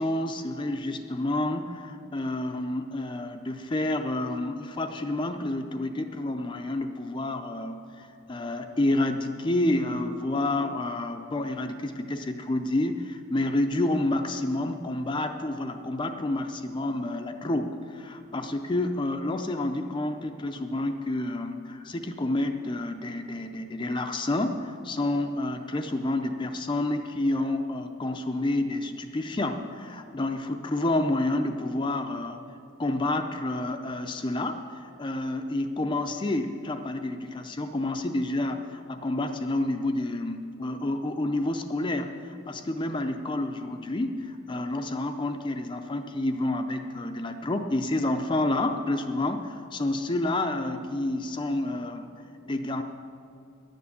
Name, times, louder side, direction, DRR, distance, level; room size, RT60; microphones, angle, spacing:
voice 1, 0.0-32.4 32.8-52.1 52.5-52.8, left 2 dB, 20° left, 6 dB, 0.4 m, -29 dB
11.0 x 7.0 x 8.5 m, 2.7 s
head